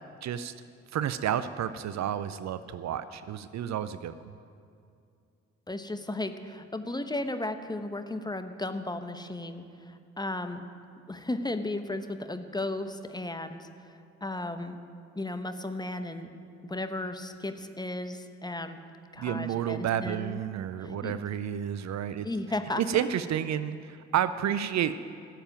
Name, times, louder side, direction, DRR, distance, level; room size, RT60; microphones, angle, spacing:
voice 1, 0.2-0.5 0.9-4.2 19.2-22.3 22.8-24.9, right 10 dB, 55° right, 13 dB, 0.6 m, -30 dB
voice 2, 5.7-10.6 11.1-14.8 15.2-16.3 16.6-18.8 19.1-20.4 20.8-21.2 22.2-22.8, left 2 dB, 10° left, 8 dB, 1.0 m, -35 dB
12.5 x 7.5 x 9.1 m, 2.5 s
hypercardioid pair, 40°, 34 cm